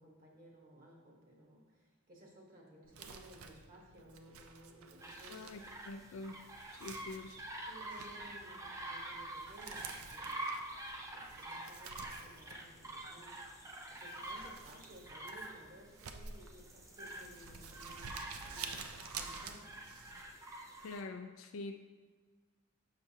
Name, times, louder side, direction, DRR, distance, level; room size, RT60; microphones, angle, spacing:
voice 1, 0.0-5.5 7.7-10.6 10.9-19.7, right 1 dB, 40° right, -2 dB, 1.2 m, -58 dB
Crumpling crinkling, 2.8-20.2, right 5 dB, 85° right, 0.5 m, -51 dB
sound 1, 5.0-21.0, right 1 dB, 15° right, 0.4 m, -47 dB
voice 2, 5.3-6.4 6.7-7.4 20.8-21.7, left 3 dB, 70° left, 5 dB, 0.3 m, -45 dB
6.5 x 5.8 x 2.8 m, 1.4 s
head